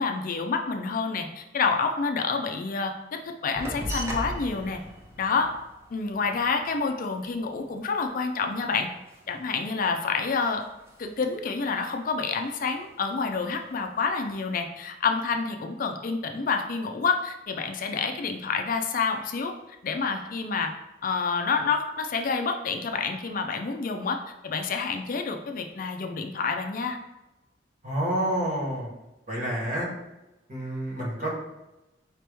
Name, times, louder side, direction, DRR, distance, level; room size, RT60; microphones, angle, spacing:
voice 1, 0.0-4.8 5.2-5.5 5.9-8.9 9.3-10.6 11.0-19.5 19.8-20.7 21.0-27.0, left 4 dB, 45° left, 5 dB, 0.4 m, -28 dB
sound 1, 3.6-8.5 8.8-10.2 10.5-11.3 11.6-13.0 13.4-14.1, equal, 15° right, 0.7 m, -39 dB
voice 2, 27.8-28.9 29.3-29.9 30.5-31.3, right 1 dB, 45° right, -4 dB, 1.5 m, -28 dB
5.0 x 3.0 x 3.4 m, 0.97 s
head